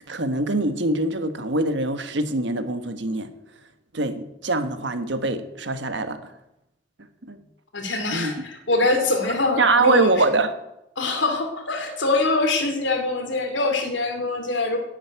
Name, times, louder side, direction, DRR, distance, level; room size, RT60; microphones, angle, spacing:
voice 1, 0.1-3.3 3.9-6.3 7.2-7.4 8.1-8.3 9.6-10.5, right 2 dB, 65° right, 9 dB, 1.3 m, -23 dB
voice 2, 7.7-10.2 11.0-14.8, left 2 dB, 70° left, 5 dB, 2.8 m, -24 dB
10.5 x 8.1 x 9.7 m, 0.87 s
head